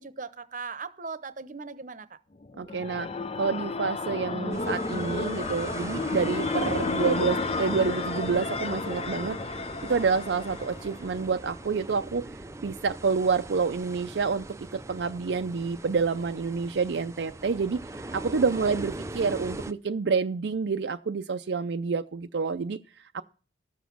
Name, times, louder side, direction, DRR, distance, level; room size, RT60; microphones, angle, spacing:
voice 1, 0.0-2.2 18.5-18.8, right 4 dB, 45° right, 0.8 m, -39 dB
sound 1, 2.4-11.2, left 3 dB, 35° left, 0.5 m, -32 dB
voice 2, 2.6-3.1 3.4-9.4 9.8-12.3 12.6-22.8 23.1-23.2, right 5 dB, 70° right, 0.5 m, -28 dB
sound 2, 4.5-19.7, right 2 dB, 15° right, 0.5 m, -40 dB
13.5 x 7.2 x 5.9 m
head